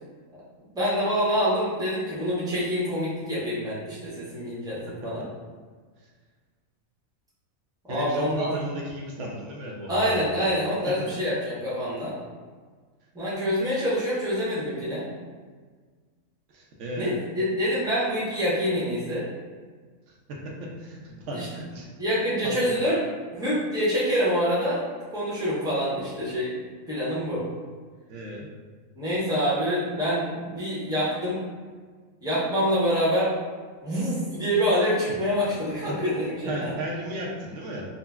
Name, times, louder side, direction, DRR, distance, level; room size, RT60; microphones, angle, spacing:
voice 1, 0.7-5.3 7.9-8.5 9.9-12.1 13.1-15.1 17.0-19.3 21.3-21.5 22.0-23.0 23.3-26.6 26.9-27.4 28.9-31.4 32.2-33.3 33.8-36.7, equal, 5° right, -9 dB, 0.6 m, -26 dB
voice 2, 7.9-10.2 16.5-17.2 20.3-21.9 22.4-22.5 28.1-28.5 36.4-37.9, right 1 dB, 65° right, -2 dB, 0.8 m, -34 dB
3.8 x 2.0 x 2.3 m, 1.5 s
omnidirectional pair, 1.5 m